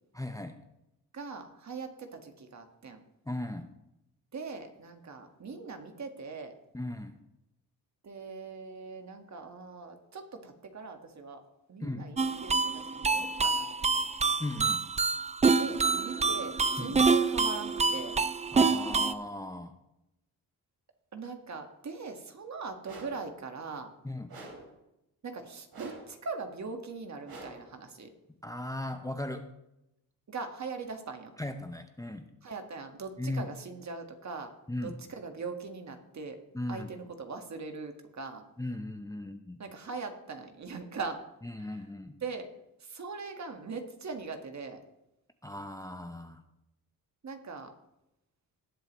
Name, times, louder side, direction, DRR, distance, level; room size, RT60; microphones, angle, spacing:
voice 1, 0.1-0.6 3.3-3.7 6.7-7.2 11.8-12.1 14.4-14.9 16.8-17.0 18.5-19.7 24.0-24.3 28.4-29.4 31.4-32.3 33.2-33.5 34.7-34.9 36.5-36.9 38.6-39.6 41.4-42.2 45.4-46.4, left 1 dB, 10° left, 7 dB, 0.7 m, -37 dB
voice 2, 1.1-3.0 4.3-6.5 8.0-11.4 11.7-14.0 15.6-18.1 21.1-23.9 25.2-28.1 30.3-31.3 32.4-34.5 34.8-36.4 36.7-38.4 39.6-41.2 41.6-41.9 42.2-42.5 42.8-44.8 47.2-47.7, right 4 dB, 50° right, 5 dB, 1.6 m, -41 dB
sound 1, 12.2-19.1, right 4 dB, 20° right, 0.4 m, -27 dB
sound 2, 22.8-23.3 24.3-24.8 25.7-26.2 27.3-27.7, right 3 dB, 80° right, 3.4 m, -46 dB
19.0 x 7.7 x 3.1 m, 0.87 s
cardioid pair, 90°, 36 cm